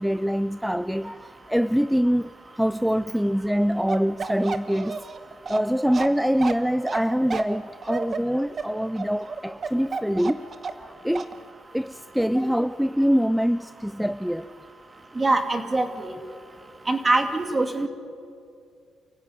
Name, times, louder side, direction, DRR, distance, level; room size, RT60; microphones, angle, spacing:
voice 1, 0.0-2.3 2.6-5.0 5.5-10.5 10.8-11.3 11.7-14.4, equal, ahead, 0.5 m, -24 dB
Bark, 3.9-10.9 11.1-11.3, right 5 dB, 40° right, 1.3 m, -31 dB
voice 2, 15.2-16.1 16.9-17.9, right 2 dB, 25° right, 2.6 m, -23 dB
29.0 x 15.5 x 9.6 m
cardioid pair, 90°, 0 cm